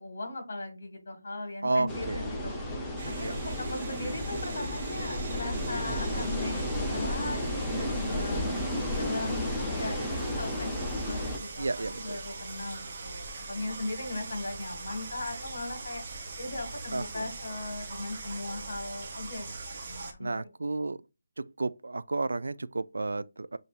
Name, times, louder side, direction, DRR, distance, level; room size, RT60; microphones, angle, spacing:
voice 1, 0.0-2.5 3.0-8.4 8.9-16.0 16.4-20.5, left 2 dB, 50° left, 1.6 m, -38 dB
voice 2, 1.6-2.3 3.2-3.3 9.9-10.1 11.6-12.2 16.9-17.3 20.2-21.0 21.4-23.6, right 3 dB, 80° right, 0.4 m, -32 dB
sound 1, 1.9-11.4, left 1 dB, 5° left, 0.4 m, -33 dB
sound 2, 3.0-20.1, right 3 dB, 30° right, 0.7 m, -42 dB
6.9 x 2.6 x 2.4 m
hypercardioid pair, 175°, 0 cm